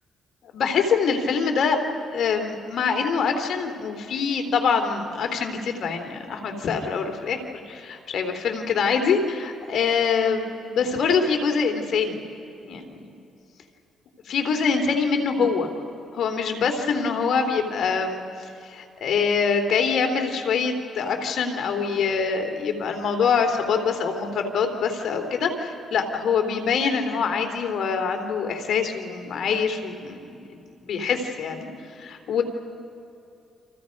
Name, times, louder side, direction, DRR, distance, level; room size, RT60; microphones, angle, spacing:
voice 1, 0.5-1.8 2.1-7.4 7.7-12.2 12.6-13.2 14.3-15.7 16.1-18.2 18.6-31.7 32.0-32.4, left 5 dB, 65° left, 5 dB, 3.1 m, -24 dB
30.0 x 26.5 x 5.3 m, 2.7 s
cardioid pair, 90°, 0 cm